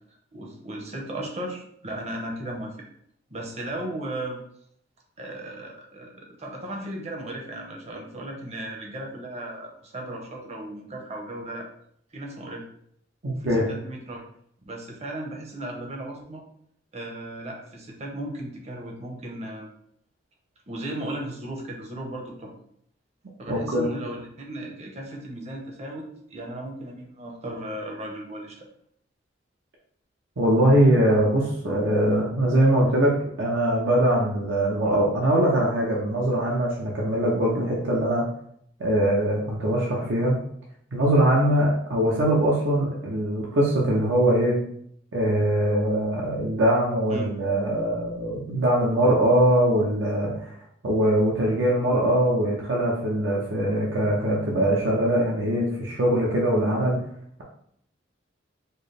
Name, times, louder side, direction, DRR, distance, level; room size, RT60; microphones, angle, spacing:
voice 1, 0.3-2.9 3.3-4.4 5.2-11.7 12.1-12.6 13.2-14.2 14.7-16.4 16.9-19.7 20.7-22.5 23.4-28.7 47.1-47.3, right 1 dB, 35° right, 0 dB, 0.7 m, -36 dB
voice 2, 13.2-13.7 23.5-23.8 30.4-33.1 33.4-38.2 38.8-40.4 40.9-44.6 45.1-50.5 50.8-57.0, right 1 dB, 75° right, -4 dB, 0.7 m, -22 dB
4.4 x 2.0 x 3.3 m, 0.68 s
head